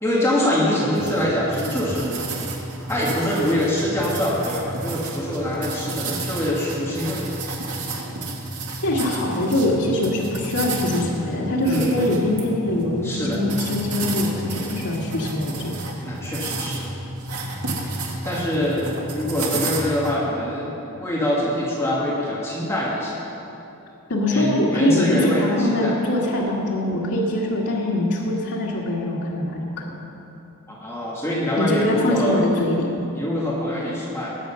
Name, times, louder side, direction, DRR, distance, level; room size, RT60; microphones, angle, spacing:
voice 1, 0.0-2.2 2.9-7.4 11.6-11.9 13.0-13.4 16.0-16.8 18.0-20.7 21.0-23.2 24.3-26.0 30.7-32.4 33.1-34.4, left 1 dB, 10° left, -6 dB, 1.9 m, -24 dB
sound 1, 0.9-20.1, right 2 dB, 80° right, 2.1 m, -31 dB
voice 2, 8.8-15.7 24.1-29.8 31.6-32.9, left 1 dB, 90° left, -5 dB, 1.9 m, -23 dB
20.0 x 7.9 x 5.7 m, 2.9 s
head